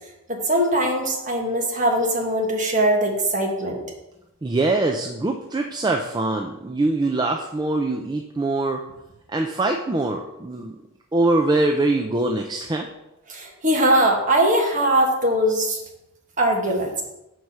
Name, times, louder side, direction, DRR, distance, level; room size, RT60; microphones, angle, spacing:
voice 1, 0.3-3.8 13.3-15.8 16.4-16.9, right 1 dB, 35° right, 0 dB, 1.4 m, -21 dB
voice 2, 4.4-8.8 9.3-10.8 11.1-12.9, right 2 dB, 20° right, 3 dB, 0.4 m, -23 dB
6.2 x 4.6 x 5.5 m, 0.92 s
head